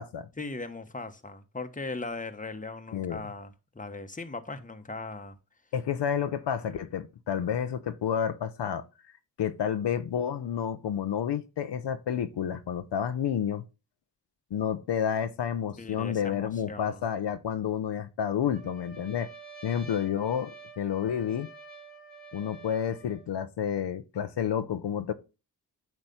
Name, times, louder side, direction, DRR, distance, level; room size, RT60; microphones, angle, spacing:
voice 1, 0.4-5.4 6.6-6.8 15.8-17.0, left 3 dB, 20° left, 1.2 m, -39 dB
voice 2, 5.7-8.8 9.4-13.6 14.5-19.3 19.6-21.5 22.3-25.1, left 8 dB, 75° left, 0.8 m, -30 dB
Trumpet, 18.4-23.3, right 4 dB, 20° right, 2.4 m, -48 dB
9.0 x 3.2 x 5.5 m
cardioid pair, 50°, 42 cm